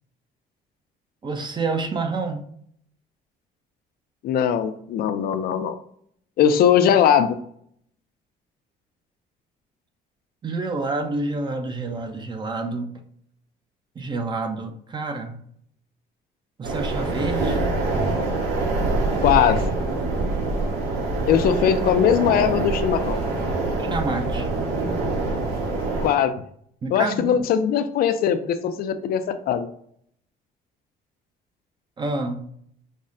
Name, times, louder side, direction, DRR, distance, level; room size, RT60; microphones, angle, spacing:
voice 1, 1.2-2.4 10.4-12.9 14.0-15.4 16.6-17.6 23.8-24.5 26.8-27.4 32.0-32.4, right 3 dB, 25° right, 6 dB, 0.6 m, -28 dB
voice 2, 4.2-5.8 6.4-7.4 19.2-19.6 21.3-23.2 26.0-26.4 26.9-29.7, left 8 dB, 60° left, 9 dB, 0.4 m, -20 dB
sound 1, 16.6-26.1, right 2 dB, 80° right, 1.0 m, -25 dB
5.3 x 2.1 x 2.4 m, 0.66 s
cardioid pair, 110°, 17 cm